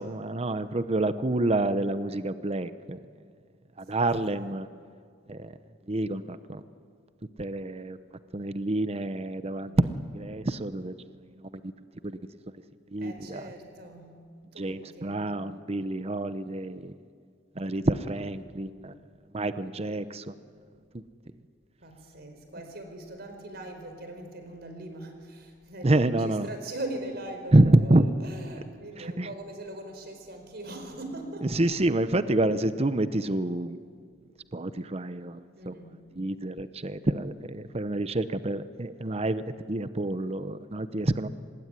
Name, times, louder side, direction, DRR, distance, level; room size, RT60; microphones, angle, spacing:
voice 1, 0.0-3.0 3.8-4.7 5.3-5.5 5.9-6.6 7.4-8.0 8.3-10.9 11.4-11.7 12.0-12.2 12.9-13.4 14.6-16.9 17.6-18.9 19.3-20.3 25.8-26.5 27.5-28.1 29.0-29.3 31.5-33.8 34.5-35.4 35.7-35.8 36.1-39.4 39.7-41.3, right 2 dB, 35° right, 12 dB, 0.8 m, -27 dB
voice 2, 13.0-14.1 14.5-15.2 21.8-31.6 35.6-36.0, right 1 dB, 60° right, 6 dB, 4.7 m, -41 dB
25.5 x 20.5 x 9.8 m, 2.1 s
head